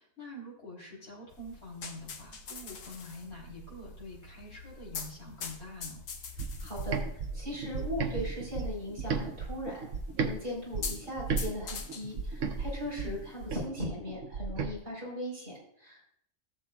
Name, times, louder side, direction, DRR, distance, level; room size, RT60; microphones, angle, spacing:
voice 1, 0.0-6.0 12.9-13.2, left 1 dB, 55° left, -5 dB, 4.1 m, -46 dB
sound 1, 1.3-13.7, left 5 dB, 85° left, 1.4 m, -45 dB
sound 2, 6.4-10.3 10.7-14.7, right 5 dB, 75° right, 1.2 m, -34 dB
voice 2, 6.6-7.0 7.3-9.9 10.2-16.0, equal, 45° right, -3 dB, 4.5 m, -38 dB
15.5 x 7.3 x 2.4 m, 0.69 s
omnidirectional pair, 1.3 m